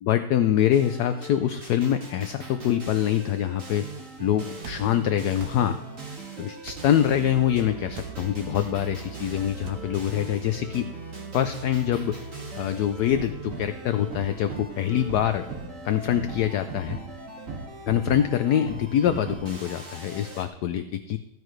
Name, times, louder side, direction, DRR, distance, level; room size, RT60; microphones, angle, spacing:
voice 1, 0.0-3.9 4.2-5.8 6.4-10.9 11.3-12.2 12.5-15.4 15.8-17.0 17.9-21.2, left 10 dB, 70° left, 9 dB, 1.1 m, -24 dB
sound 1, 0.7-20.4, right 3 dB, 45° right, 2.5 m, -39 dB
sound 2, 4.6-4.9 5.4-5.6 6.6-6.9 7.9-8.2 9.6-9.8, right 6 dB, 60° right, 1.6 m, -41 dB
15.5 x 14.0 x 3.2 m, 0.92 s
omnidirectional pair, 1.9 m